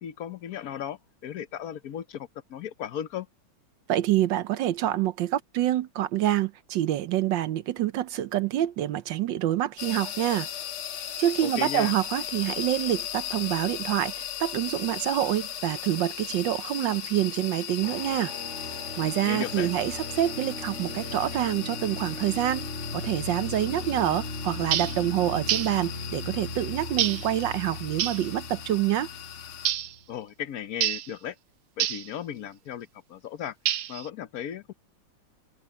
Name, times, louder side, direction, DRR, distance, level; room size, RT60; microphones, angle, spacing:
voice 1, 0.0-3.3 11.4-11.9 19.2-19.7 30.1-31.3 31.8-33.5 33.9-34.7, left 10 dB, 60° left, 1.0 m, -36 dB
voice 2, 3.9-10.5 11.2-18.3 19.0-29.1, right 13 dB, 70° right, 1.2 m, -27 dB
sound 1, 9.8-29.7, left 10 dB, 80° left, 2.1 m, -37 dB
sound 2, 17.8-30.0, left 1 dB, 30° left, 7.0 m, -38 dB
sound 3, 24.7-25.0 25.5-25.8 27.0-27.3 28.0-28.3 29.6-29.9 30.8-31.1 31.8-32.1 33.7-34.1, right 11 dB, 85° right, 1.8 m, -27 dB
omnidirectional pair, 2.4 m